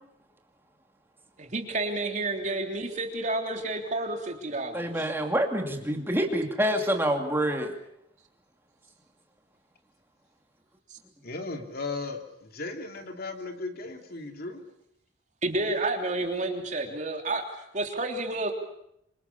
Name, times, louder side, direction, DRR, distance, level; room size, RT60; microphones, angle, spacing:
voice 1, 1.4-5.1 15.4-17.5 17.7-18.5, right 2 dB, 40° right, 3 dB, 3.4 m, -30 dB
voice 2, 4.7-7.7, equal, 10° right, 3 dB, 2.6 m, -27 dB
voice 3, 11.2-14.6, left 3 dB, 55° left, 5 dB, 2.9 m, -36 dB
26.5 x 25.5 x 7.1 m, 0.77 s
head